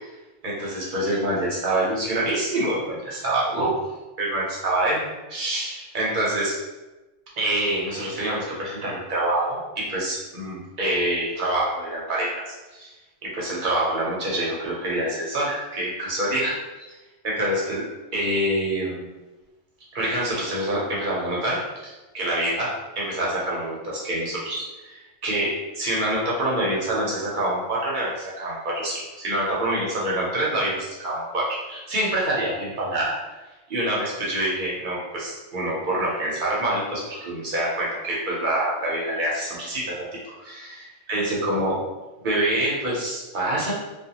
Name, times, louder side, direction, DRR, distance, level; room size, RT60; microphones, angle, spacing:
voice 1, 0.4-3.8 4.2-5.0 5.3-6.5 7.4-12.9 13.2-16.9 17.2-19.1 19.9-33.2 33.7-41.8 42.2-43.7, right 1 dB, 50° right, -5 dB, 0.6 m, -26 dB
2.5 x 2.2 x 2.8 m, 1.1 s
omnidirectional pair, 1.4 m